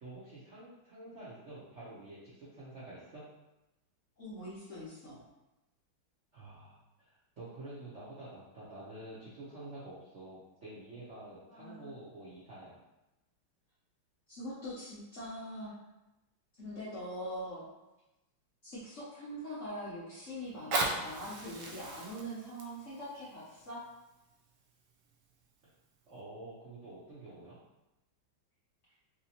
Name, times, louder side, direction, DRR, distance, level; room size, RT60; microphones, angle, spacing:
voice 1, 0.0-3.2 6.3-12.8 26.1-27.6, right 2 dB, 60° right, -10 dB, 0.7 m, -48 dB
voice 2, 4.2-5.2 11.5-11.9 14.3-15.7 16.6-17.6 18.6-23.8, equal, 55° left, -9 dB, 0.8 m, -43 dB
Fire, 20.5-25.4 26.1-26.2, right 2 dB, 85° right, 1.5 m, -38 dB
3.3 x 2.9 x 2.8 m, 0.97 s
omnidirectional pair, 2.3 m